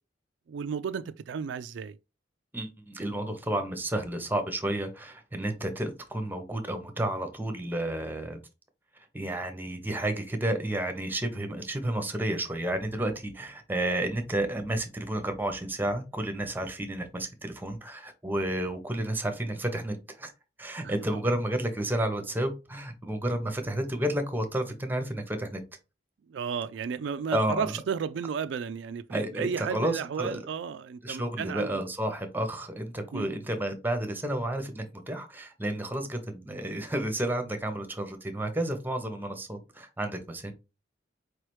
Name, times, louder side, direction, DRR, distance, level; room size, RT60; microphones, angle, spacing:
voice 1, 0.5-1.9 20.8-20.9 26.3-31.7 33.1-33.3, right 6 dB, 75° right, 0.3 m, -33 dB
voice 2, 2.5-8.4 9.1-20.3 20.6-25.6 27.3-27.7 29.1-30.5 31.0-40.5, right 1 dB, 10° right, 0.7 m, -31 dB
4.6 x 3.2 x 3.0 m
head